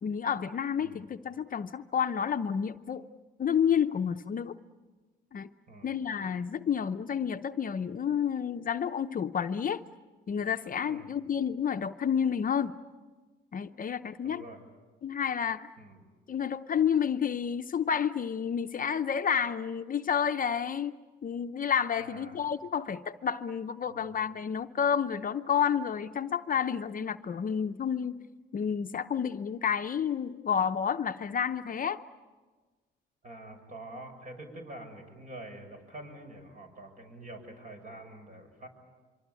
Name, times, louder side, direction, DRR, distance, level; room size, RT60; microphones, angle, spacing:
voice 1, 0.0-3.0 3.4-4.5 5.3-5.5 5.8-9.8 10.3-12.7 13.5-14.4 15.0-15.7 16.3-20.9 21.2-28.2 28.5-32.0, left 7 dB, 45° left, 9 dB, 0.7 m, -30 dB
voice 2, 10.8-11.2 14.2-14.6 15.8-16.0 22.0-22.4 23.8-24.2 33.2-38.7, right 1 dB, 40° right, 5 dB, 6.7 m, -46 dB
25.0 x 24.5 x 8.4 m, 1.3 s
cardioid pair, 90°, 20 cm